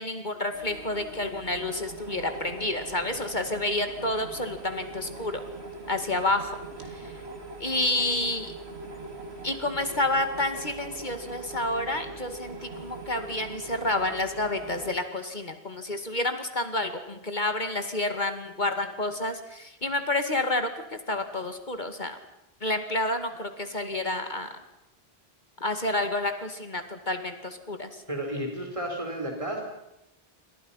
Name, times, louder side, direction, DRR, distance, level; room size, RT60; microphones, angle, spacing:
voice 1, 0.0-5.4 5.9-6.6 6.9-7.1 7.6-8.5 9.4-22.2 22.6-24.5 25.6-27.9, left 2 dB, 45° left, 7 dB, 2.4 m, -29 dB
sound 1, 0.5-15.0, right 2 dB, 80° right, 3.4 m, -41 dB
voice 2, 28.1-29.6, right 1 dB, 30° right, 1 dB, 4.4 m, -32 dB
29.0 x 24.5 x 5.8 m, 0.87 s
omnidirectional pair, 1.1 m